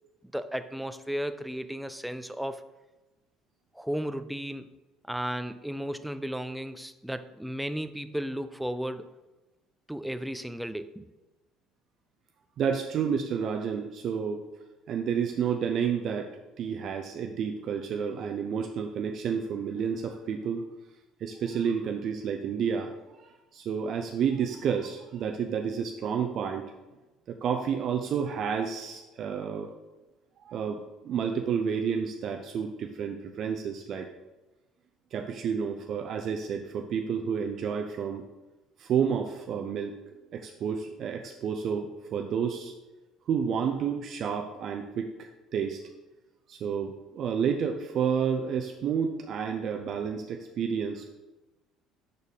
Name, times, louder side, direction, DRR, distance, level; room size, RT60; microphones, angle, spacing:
voice 1, 0.3-2.6 3.7-4.7 5.1-9.1 9.9-11.1, equal, ahead, 10 dB, 0.4 m, -34 dB
voice 2, 12.6-14.4 14.9-20.6 21.2-22.9 23.2-26.6 27.3-29.7 30.4-34.1 35.1-38.2 38.8-40.0 40.3-42.7 43.3-45.8 46.5-51.2, right 7 dB, 50° right, 4 dB, 0.5 m, -30 dB
6.5 x 4.3 x 5.4 m, 1.1 s
cardioid pair, 120°, 0 cm